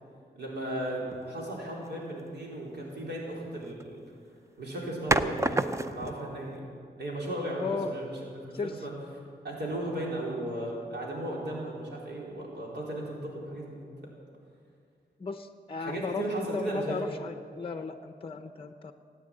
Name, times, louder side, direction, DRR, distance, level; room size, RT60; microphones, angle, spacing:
voice 1, 0.3-4.0 4.6-6.6 7.0-8.2 8.5-8.9 9.4-13.8 15.8-17.0, right 1 dB, 85° right, -3 dB, 3.9 m, -35 dB
sound 1, 1.1-1.4 3.6-3.9 5.1-6.3, right 2 dB, 15° right, 0.5 m, -29 dB
voice 2, 7.6-7.9 8.5-8.9 15.2-18.9, left 4 dB, 30° left, 8 dB, 0.6 m, -35 dB
17.5 x 9.3 x 8.8 m, 2.3 s
wide cardioid pair, 135°, 17 cm